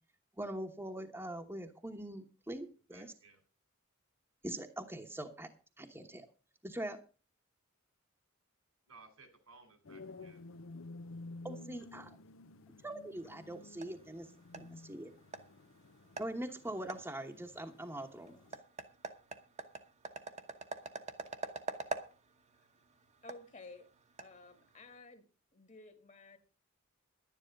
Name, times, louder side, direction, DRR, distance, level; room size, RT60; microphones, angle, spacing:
voice 1, 0.4-3.1 4.4-5.5 5.8-6.3 6.6-7.0 11.4-12.2 12.8-14.3 14.6-15.1 16.2-18.4, right 1 dB, 10° right, 4 dB, 1.1 m, -42 dB
voice 2, 2.9-3.4 8.9-10.4, right 4 dB, 85° right, 8 dB, 4.2 m, -59 dB
sound 1, 9.8-18.6, left 3 dB, 70° left, 0.7 m, -52 dB
sound 2, 13.1-25.0, right 3 dB, 35° right, 1.1 m, -47 dB
voice 3, 23.2-23.9 24.2-25.3 25.5-26.4, left 3 dB, 35° left, 8 dB, 1.8 m, -53 dB
11.0 x 10.0 x 5.3 m, 0.35 s
head